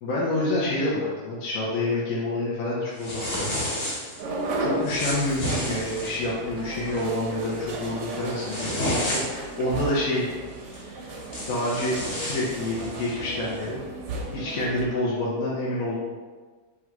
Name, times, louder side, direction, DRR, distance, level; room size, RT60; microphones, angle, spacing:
voice 1, 0.0-3.5 4.6-10.3 10.7-11.1 11.5-13.8 14.3-16.0, left 1 dB, 60° left, -6 dB, 1.1 m, -28 dB
sound 1, 3.0-4.2 4.8-6.2 6.7-7.1 7.5-7.7 8.2-9.5 10.7-10.8 11.2-13.1, equal, 30° left, 1.0 m, -31 dB
sound 2, 4.2-14.9, right 2 dB, 85° right, 1.3 m, -34 dB
3.7 x 3.0 x 4.5 m, 1.4 s
omnidirectional pair, 1.8 m